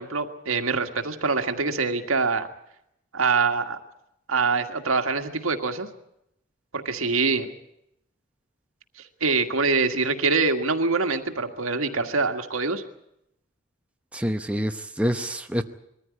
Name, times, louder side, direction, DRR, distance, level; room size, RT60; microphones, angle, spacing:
voice 1, 0.0-2.5 3.1-3.8 4.3-5.9 6.7-7.5 9.2-12.8, right 4 dB, 80° right, 6 dB, 1.8 m, -24 dB
voice 2, 14.1-15.6, equal, 5° right, 6 dB, 0.8 m, -26 dB
22.0 x 14.5 x 9.9 m, 0.79 s
head